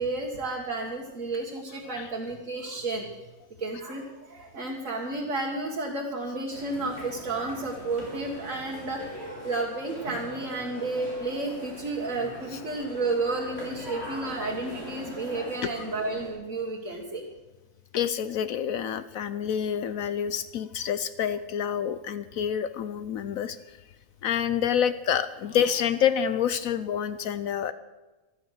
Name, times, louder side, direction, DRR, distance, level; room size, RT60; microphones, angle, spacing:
voice 1, 0.0-3.1 3.6-17.2, right 3 dB, 60° right, -2 dB, 2.1 m, -32 dB
sound 1, 6.5-16.3, equal, 45° left, 5.0 m, -41 dB
voice 2, 17.9-23.6 24.2-27.7, left 8 dB, 70° left, 13 dB, 1.0 m, -27 dB
14.5 x 13.0 x 6.5 m, 1.1 s
omnidirectional pair, 1.5 m